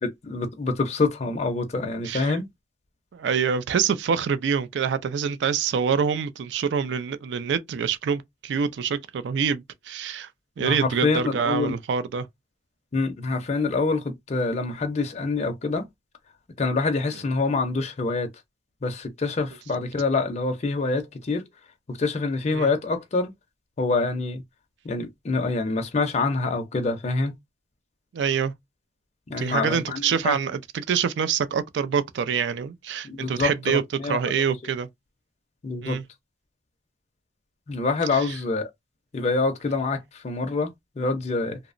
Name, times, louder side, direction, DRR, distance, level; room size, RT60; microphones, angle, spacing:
voice 1, 0.0-2.5 10.6-11.7 12.9-15.9 16.6-18.3 18.8-21.5 21.9-23.3 23.8-24.4 24.8-27.3 29.3-30.4 33.0-34.2 35.6-36.0 37.7-38.7 39.1-41.6, left 3 dB, 40° left, 0.4 m, -26 dB
voice 2, 2.0-2.4 3.1-10.3 10.6-12.3 22.5-22.7 28.1-28.5 29.4-33.8 34.1-34.9 35.8-36.0 38.1-38.3, right 6 dB, 70° right, 0.3 m, -26 dB
2.8 x 2.0 x 2.4 m
head